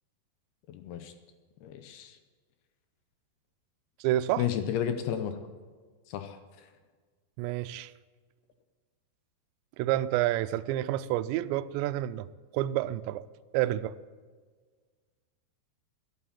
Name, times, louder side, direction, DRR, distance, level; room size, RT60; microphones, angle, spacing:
voice 1, 0.7-1.1 1.6-2.2 4.4-5.4 6.1-6.7, left 9 dB, 75° left, 2.5 m, -33 dB
voice 2, 4.0-4.4 7.4-7.9 9.8-12.3 12.5-13.2 13.5-14.0, right 14 dB, 90° right, 2.8 m, -29 dB
13.0 x 11.5 x 7.4 m
omnidirectional pair, 5.0 m